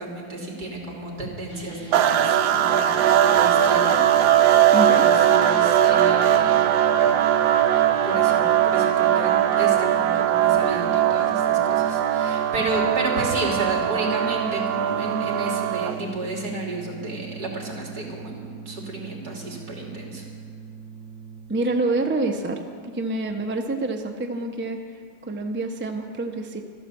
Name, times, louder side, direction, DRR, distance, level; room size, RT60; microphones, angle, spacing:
voice 1, 0.0-4.0 4.7-6.7 7.0-7.1 7.5-20.2, right 2 dB, 60° right, -1 dB, 3.3 m, -32 dB
sound 1, 1.5-21.4, right 3 dB, 30° right, 3.3 m, -40 dB
sound 2, 1.9-16.1, right 10 dB, 85° right, 1.4 m, -20 dB
voice 2, 4.7-5.1 21.5-24.8 25.3-26.6, right 2 dB, 15° right, 3 dB, 0.4 m, -27 dB
13.5 x 12.0 x 7.2 m, 2.1 s
omnidirectional pair, 2.0 m